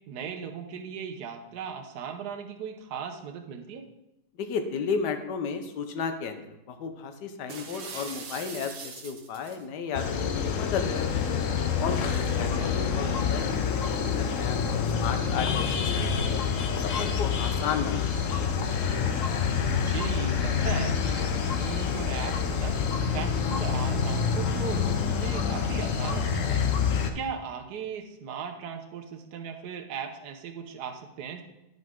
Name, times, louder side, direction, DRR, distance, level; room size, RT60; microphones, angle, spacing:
voice 1, 0.1-3.8 12.3-12.7 19.7-22.8 23.1-26.6 27.0-31.4, right 7 dB, 75° right, 5 dB, 1.4 m, -37 dB
voice 2, 4.4-11.3 11.8-16.4 16.8-18.5, left 5 dB, 75° left, 7 dB, 1.4 m, -34 dB
sound 1, 7.5-9.6, right 5 dB, 50° right, 0.8 m, -41 dB
sound 2, 9.9-27.1, left 6 dB, 60° left, 0.9 m, -27 dB
10.5 x 5.2 x 3.6 m, 0.88 s
omnidirectional pair, 1.8 m